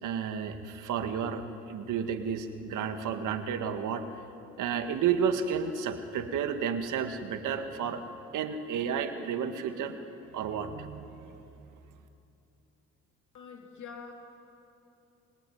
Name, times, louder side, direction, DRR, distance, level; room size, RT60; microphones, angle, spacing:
voice 1, 0.0-4.1 4.6-8.1 8.3-11.1, right 7 dB, 80° right, 7 dB, 1.9 m, -32 dB
voice 2, 13.3-14.1, left 6 dB, 75° left, 2 dB, 2.8 m, -45 dB
29.0 x 19.0 x 9.4 m, 2.8 s
cardioid pair, 90°, 30 cm